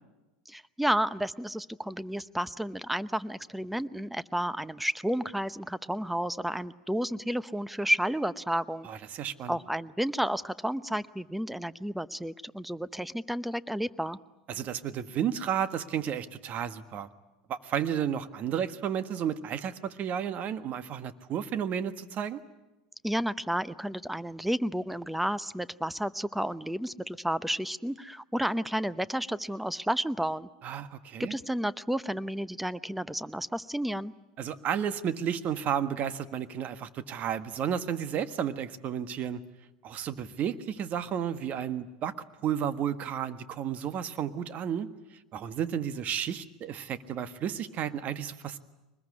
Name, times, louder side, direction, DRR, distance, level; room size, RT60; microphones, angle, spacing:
voice 1, 0.5-8.9 9.5-14.2 23.0-30.5 31.2-34.1, equal, 5° right, 16 dB, 0.8 m, -31 dB
voice 2, 8.8-9.6 14.5-17.1 17.5-22.4 30.6-31.3 34.4-39.4 39.8-42.1 42.4-44.9 45.3-48.6, right 9 dB, 45° right, 11 dB, 1.5 m, -32 dB
24.0 x 20.5 x 9.8 m, 1.1 s
hypercardioid pair, 85°, 4 cm